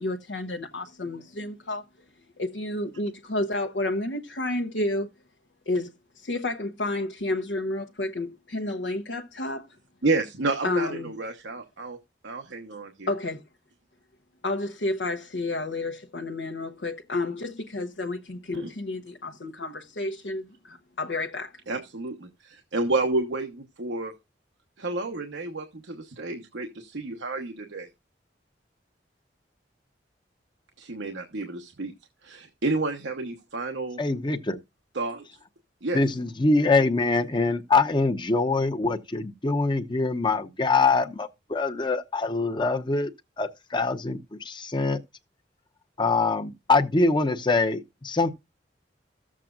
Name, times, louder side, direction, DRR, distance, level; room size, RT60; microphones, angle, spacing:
voice 1, 0.0-1.8 2.4-5.1 5.7-9.7 10.6-11.1 13.1-13.4 14.4-21.5, left 2 dB, 75° left, 0.8 m, -30 dB
voice 2, 10.0-12.0 12.2-13.1 18.5-18.7 21.7-24.1 24.8-27.9 30.8-31.9 32.2-34.0 34.9-35.3 35.8-36.0, right 3 dB, 85° right, 1.1 m, -30 dB
voice 3, 34.0-34.6 35.9-43.1 43.4-45.0 46.0-48.3, left 3 dB, 25° left, 0.8 m, -24 dB
14.5 x 7.4 x 2.5 m
head